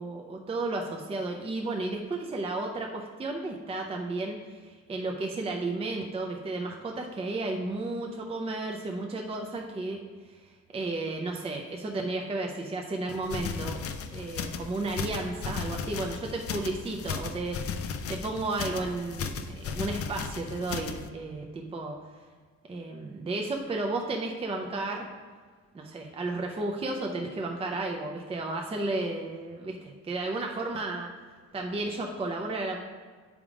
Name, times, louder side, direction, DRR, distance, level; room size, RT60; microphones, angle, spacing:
voice 1, 0.0-10.0 10.7-13.8 14.1-22.0 22.7-25.1 25.7-31.1 31.5-32.8, right 2 dB, 20° right, 1 dB, 0.6 m, -33 dB
sound 1, 13.1-21.1, left 6 dB, 50° left, 0.5 m, -36 dB
9.4 x 3.6 x 4.8 m, 1.6 s
cardioid pair, 155°, 31 cm